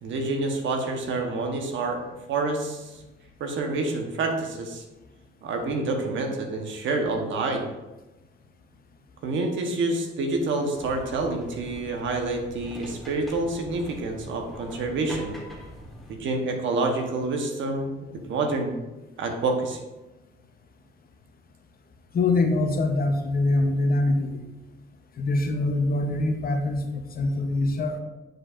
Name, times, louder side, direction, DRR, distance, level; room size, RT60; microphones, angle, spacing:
voice 1, 0.0-2.0 2.3-3.0 3.4-4.8 5.4-7.7 9.2-15.3 16.1-18.0 18.3-18.8 19.2-19.8, right 3 dB, 75° right, 3 dB, 1.1 m, -28 dB
sound 1, 10.7-16.2, equal, ahead, 1.6 m, -42 dB
voice 2, 22.1-24.4 25.2-28.0, left 2 dB, 50° left, 5 dB, 0.9 m, -24 dB
9.2 x 4.7 x 2.5 m, 1.1 s
cardioid pair, 90°, 20 cm